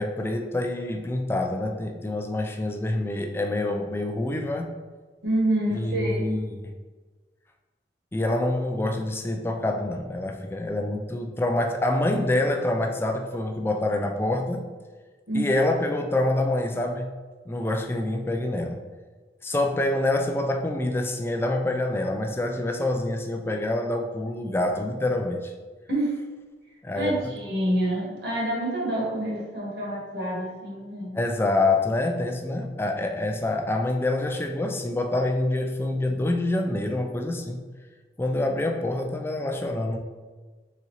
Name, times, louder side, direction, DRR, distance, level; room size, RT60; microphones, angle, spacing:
voice 1, 0.0-4.7 5.8-6.7 8.1-14.6 15.3-17.1 17.5-18.8 19.4-25.5 26.8-27.1 31.1-37.6 38.2-40.0, left 2 dB, 15° left, 4 dB, 0.3 m, -26 dB
voice 2, 5.2-6.2 15.3-15.6 25.9-26.2 26.9-31.2, right 1 dB, 70° right, -4 dB, 1.4 m, -27 dB
4.1 x 3.6 x 2.9 m, 1.4 s
head